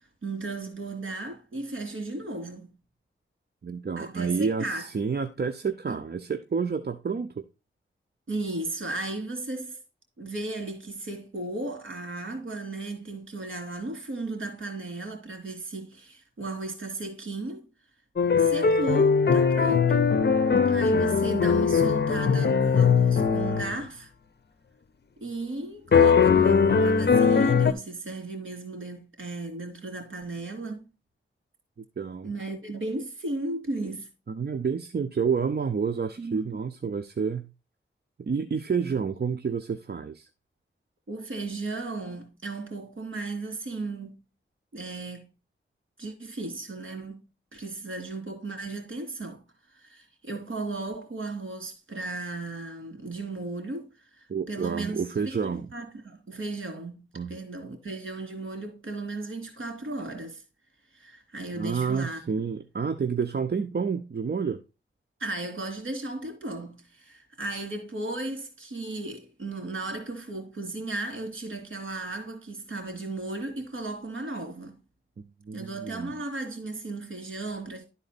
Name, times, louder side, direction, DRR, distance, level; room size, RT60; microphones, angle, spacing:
voice 1, 0.0-2.7 4.0-4.9 5.9-6.0 8.3-9.8 10.2-17.7 18.4-20.1 20.7-24.1 25.2-30.9 32.2-34.1 36.2-36.6 41.1-44.2 44.7-45.3 46.0-47.2 47.5-53.9 54.2-55.3 55.7-60.4 60.9-62.3 65.2-74.8 75.5-77.8, right 2 dB, 65° right, 2.8 m, -35 dB
voice 2, 3.6-7.4 32.0-32.3 34.3-37.5 38.2-40.3 54.3-55.7 57.2-57.4 61.5-64.6 75.5-76.1, right 5 dB, 50° right, 0.7 m, -29 dB
sound 1, 18.2-23.8 25.9-27.7, left 5 dB, 50° left, 0.7 m, -21 dB
11.5 x 4.1 x 4.1 m
wide cardioid pair, 70°, 21 cm